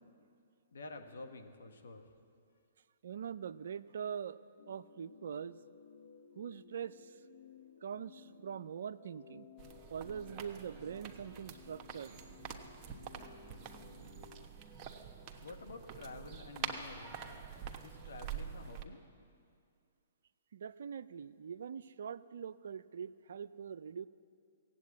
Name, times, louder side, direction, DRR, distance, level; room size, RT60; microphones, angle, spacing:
voice 1, 0.7-2.1 15.4-19.0, left 3 dB, 75° left, 5 dB, 1.4 m, -50 dB
voice 2, 3.0-4.4 4.7-5.6 6.4-7.2 7.8-9.5 9.9-12.2 20.5-24.1, right 7 dB, 65° right, 16 dB, 0.4 m, -43 dB
sound 1, 4.6-14.5, left 8 dB, 60° left, 0.8 m, -58 dB
sound 2, 9.6-18.8, right 7 dB, 30° right, 1.1 m, -46 dB
16.5 x 8.2 x 8.4 m, 2.4 s
hypercardioid pair, 125°, 0 cm